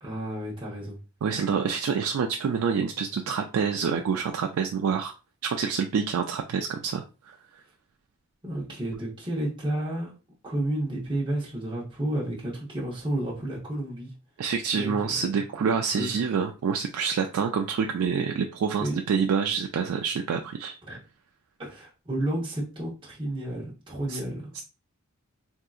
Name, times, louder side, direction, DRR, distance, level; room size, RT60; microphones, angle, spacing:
voice 1, 0.0-1.0 8.4-10.1 10.4-14.1 14.7-16.1 18.8-19.0 20.9-21.0 21.6-24.5, right 1 dB, 25° right, 1.0 m, -31 dB
voice 2, 1.2-5.1 5.4-7.3 14.4-20.7 24.1-24.2 24.5-24.6, right 6 dB, 80° right, 0.3 m, -27 dB
3.6 x 2.7 x 2.4 m
head